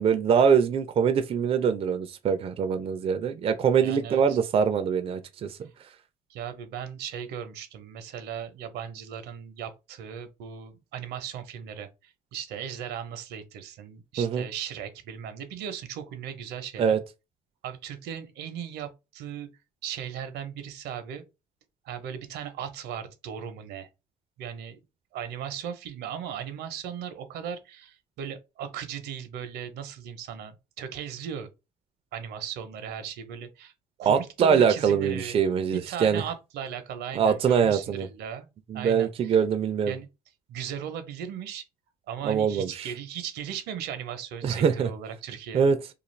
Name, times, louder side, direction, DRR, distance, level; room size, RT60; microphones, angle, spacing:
voice 1, 0.0-5.7 14.2-14.5 16.8-17.0 34.1-36.2 37.1-38.1 38.7-39.9 42.2-42.9 44.4-44.9 45.5-45.8, right 7 dB, 35° right, 0.4 m, -23 dB
voice 2, 3.8-4.4 6.3-17.0 17.6-19.5 19.8-21.2 21.8-23.9 24.4-24.8 25.1-31.5 32.1-33.7 34.0-35.4 35.9-38.5 38.7-39.3 39.8-40.1 40.5-41.6 42.1-45.7, right 8 dB, 80° right, 0.7 m, -37 dB
2.4 x 2.4 x 3.1 m
cardioid pair, 110°, 17 cm